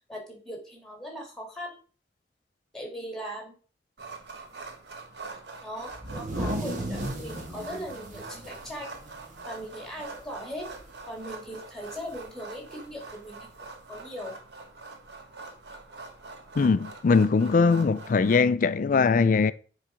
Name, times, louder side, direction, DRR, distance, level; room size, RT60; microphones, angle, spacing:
voice 1, 0.0-1.8 2.7-3.6 5.6-8.9 9.4-10.7 11.1-13.5 13.9-14.4, equal, 5° left, 2.2 m, -39 dB
sound 1, 4.0-18.4, right 3 dB, 70° right, 1.1 m, -44 dB
sound 2, 5.9-9.7 10.0-10.1 10.5-11.0 12.1-12.2 13.2-13.3, right 1 dB, 45° right, 1.5 m, -35 dB
voice 2, 16.6-19.5, left 4 dB, 50° left, 0.4 m, -21 dB
7.3 x 4.0 x 4.9 m
head